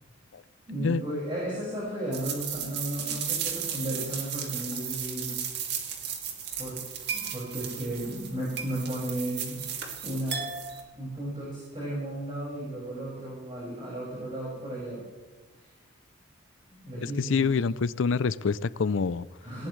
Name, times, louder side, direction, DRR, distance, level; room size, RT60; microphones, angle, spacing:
voice 1, 0.7-5.4 6.6-6.8 7.1-9.6 10.0-10.5 10.9-15.0 15.6-15.7 16.8-17.6 19.4-19.7, right 1 dB, 25° right, -6 dB, 5.6 m, -34 dB
sound 1, 2.1-10.8, right 7 dB, 50° right, 2.5 m, -35 dB
voice 2, 17.0-19.3, left 5 dB, 65° left, 18 dB, 0.4 m, -26 dB
19.0 x 17.5 x 3.2 m, 1.2 s
head